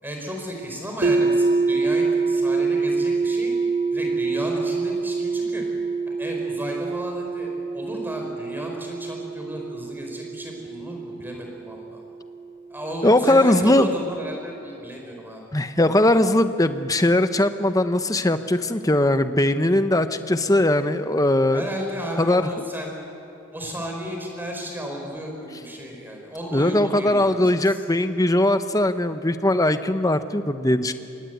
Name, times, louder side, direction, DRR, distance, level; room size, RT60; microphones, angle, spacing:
voice 1, 0.0-3.5 3.9-5.6 6.1-12.0 12.7-15.4 21.5-22.9 23.5-27.8, equal, 10° right, 1 dB, 4.8 m, -34 dB
sound 1, 1.0-12.9, right 4 dB, 40° right, 1.4 m, -26 dB
voice 2, 13.0-13.9 15.5-21.6 22.2-22.5 26.5-30.9, left 1 dB, 15° left, 10 dB, 0.9 m, -20 dB
25.5 x 22.0 x 9.4 m, 2.7 s
head